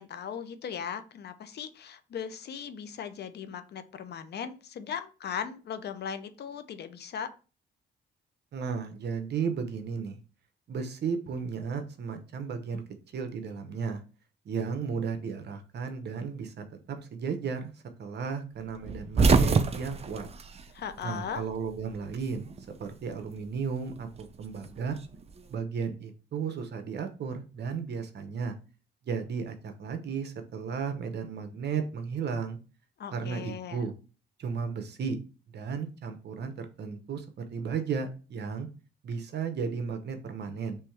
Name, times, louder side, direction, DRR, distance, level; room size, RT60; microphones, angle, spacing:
voice 1, 0.0-7.3 20.7-21.4 33.0-33.9, left 7 dB, 55° left, 11 dB, 0.6 m, -38 dB
voice 2, 8.5-10.2 10.7-12.8 13.1-14.0 14.4-17.7 18.0-20.3 21.0-22.5 22.8-25.0 25.5-28.5 29.0-32.6 33.1-33.9 34.4-35.2 35.5-37.2 37.5-38.7 39.0-40.8, right 6 dB, 55° right, 7 dB, 0.9 m, -34 dB
sound 1, 18.8-21.4 21.7-22.7 23.9-25.4, right 4 dB, 30° right, 0.5 m, -26 dB
3.4 x 3.1 x 4.4 m, 0.35 s
cardioid pair, 90°, 20 cm